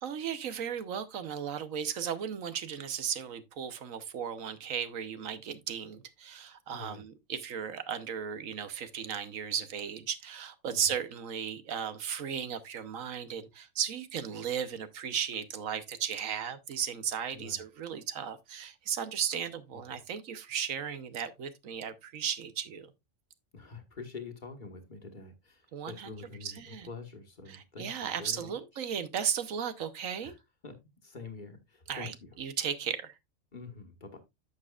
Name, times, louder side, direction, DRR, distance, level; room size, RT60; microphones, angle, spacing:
voice 1, 0.0-22.9 25.7-26.1 26.4-26.9 27.5-30.3 31.9-33.1, right 8 dB, 85° right, 1.3 m, -35 dB
voice 2, 6.7-7.0 10.7-10.8 17.3-17.6 19.7-19.8 23.5-28.6 30.2-30.4 30.6-30.8 31.0-32.3 33.5-34.2, left 4 dB, 40° left, 1.5 m, -46 dB
11.0 x 7.5 x 2.4 m
omnidirectional pair, 1.4 m